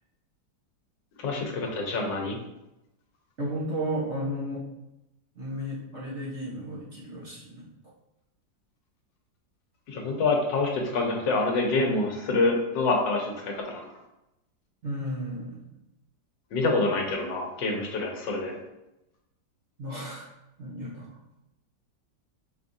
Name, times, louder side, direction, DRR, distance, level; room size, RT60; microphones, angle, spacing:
voice 1, 1.2-2.4 9.9-13.8 16.5-18.5, left 3 dB, 75° left, 1 dB, 1.5 m, -26 dB
voice 2, 3.4-4.6 5.4-7.6 14.8-15.6 19.8-20.3 20.6-21.1, equal, 45° right, -6 dB, 1.1 m, -33 dB
4.9 x 3.5 x 2.6 m, 0.90 s
omnidirectional pair, 2.0 m